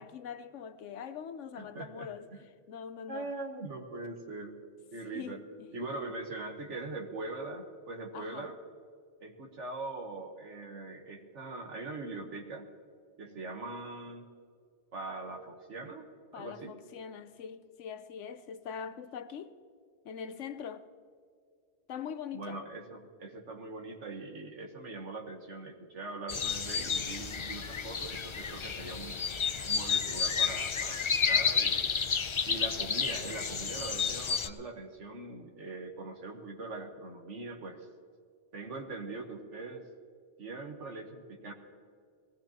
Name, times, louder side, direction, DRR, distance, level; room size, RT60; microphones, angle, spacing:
voice 1, 0.0-2.3 2.7-3.3 5.1-5.7 8.1-8.5 16.3-19.6 20.0-20.9 21.9-22.6, left 7 dB, 85° left, 1.1 m, -42 dB
voice 2, 1.6-2.4 3.1-4.6 4.9-5.4 5.7-8.6 9.2-12.7 13.2-14.3 14.9-16.8 22.3-29.2 29.6-32.0 32.4-37.9 38.5-39.8 40.4-41.5, right 3 dB, 80° right, 1.6 m, -42 dB
sound 1, 26.3-34.5, left 6 dB, 45° left, 0.4 m, -31 dB
20.5 x 16.5 x 2.9 m
omnidirectional pair, 1.2 m